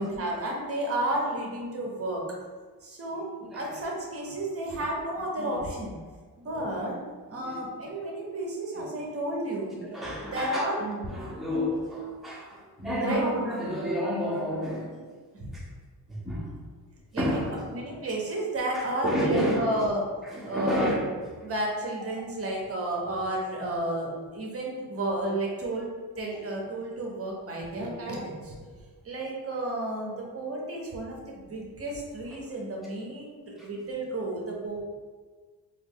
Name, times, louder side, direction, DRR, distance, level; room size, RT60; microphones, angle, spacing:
voice 1, 0.0-2.2 2.8-3.3 3.5-6.0 6.4-7.0 7.3-9.8 10.3-10.8 13.0-13.2 15.3-15.5 17.1-20.0 20.4-20.9 21.4-25.9 26.2-28.6 29.0-34.8, right 1 dB, 35° right, -2 dB, 0.7 m, -32 dB
voice 2, 3.1-3.8 4.2-4.3 4.7-5.0 5.4-5.6 7.3-8.0 8.7-8.9 9.8-15.1 15.5-15.7 16.1-16.5 17.2-18.0 18.7-19.9 20.2-21.1 22.1-22.2 26.3-26.4 32.3-32.4 33.6-33.7, equal, ahead, -6 dB, 0.7 m, -31 dB
3.1 x 2.3 x 3.6 m, 1.4 s
wide cardioid pair, 145°, 38 cm